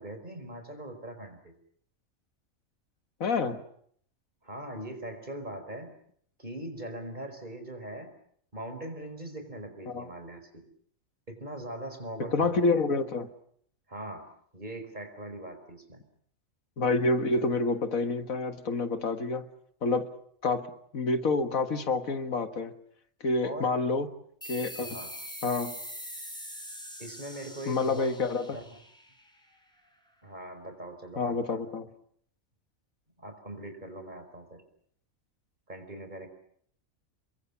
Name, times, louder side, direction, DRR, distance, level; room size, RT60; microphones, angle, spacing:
voice 1, 0.0-1.5 4.4-5.9 6.4-8.1 8.5-10.6 11.3-12.6 13.9-14.3 14.5-16.0 23.4-23.7 24.8-25.1 27.0-28.1 28.5-28.6 30.2-31.6 33.2-34.6 35.7-36.3, right 1 dB, 35° right, 7 dB, 5.0 m, -41 dB
voice 2, 3.2-3.6 9.9-10.1 12.2-13.3 16.8-19.5 19.8-20.1 20.4-20.7 20.9-22.7 23.2-24.1 24.5-24.9 25.4-25.7 27.7-28.6 31.2-31.9, left 3 dB, 85° left, 9 dB, 2.0 m, -28 dB
sound 1, 24.4-29.6, equal, 5° left, 5.6 m, -43 dB
30.0 x 23.0 x 7.1 m, 0.65 s
omnidirectional pair, 1.4 m